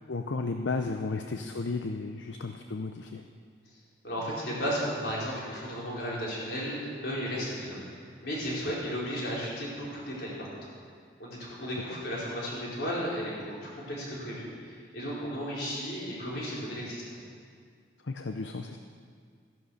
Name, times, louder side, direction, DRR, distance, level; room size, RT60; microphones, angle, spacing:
voice 1, 0.1-3.2 18.0-18.8, left 3 dB, 75° left, 6 dB, 0.6 m, -33 dB
voice 2, 4.0-10.7 11.2-17.1, equal, 55° left, -6 dB, 4.7 m, -34 dB
14.5 x 11.0 x 6.5 m, 2.1 s
head